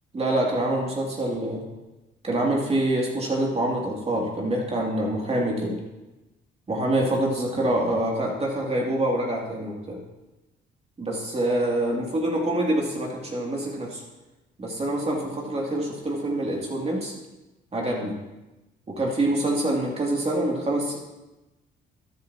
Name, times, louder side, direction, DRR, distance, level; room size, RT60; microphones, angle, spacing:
voice 1, 0.1-1.6 2.2-5.8 6.7-10.0 11.0-14.0 14.6-17.1 17.7-18.1 18.9-21.0, right 1 dB, 30° right, -2 dB, 2.7 m, -26 dB
12.5 x 10.5 x 2.9 m, 1.0 s
cardioid pair, 90°, 20 cm